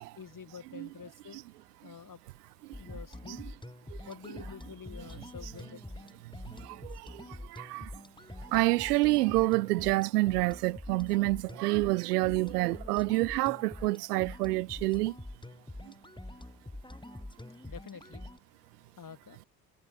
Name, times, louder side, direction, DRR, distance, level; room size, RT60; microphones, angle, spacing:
voice 1, 0.2-1.4 1.8-2.2 2.8-3.4 4.1-5.8 17.6-18.2 19.0-19.4, left 6 dB, 45° left, 6.8 m, -47 dB
sound 1, 2.7-18.4, left 1 dB, 10° left, 6.1 m, -46 dB
voice 2, 6.6-7.2 7.5-7.9 8.5-15.1, right 20 dB, 80° right, 1.6 m, -28 dB
figure-of-eight pair, 45°, 46 cm